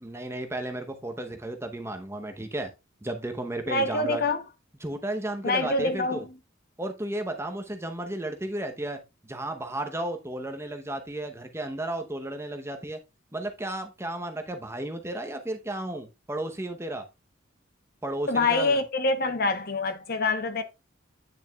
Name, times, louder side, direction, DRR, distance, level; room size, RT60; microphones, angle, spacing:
voice 1, 0.0-2.7 3.0-4.2 4.8-6.2 6.8-13.0 13.3-17.0 18.0-18.8, right 1 dB, 15° right, 0.8 m, -33 dB
voice 2, 3.7-4.5 5.4-6.3 18.3-20.6, left 3 dB, 50° left, 0.8 m, -25 dB
8.7 x 6.7 x 2.3 m
head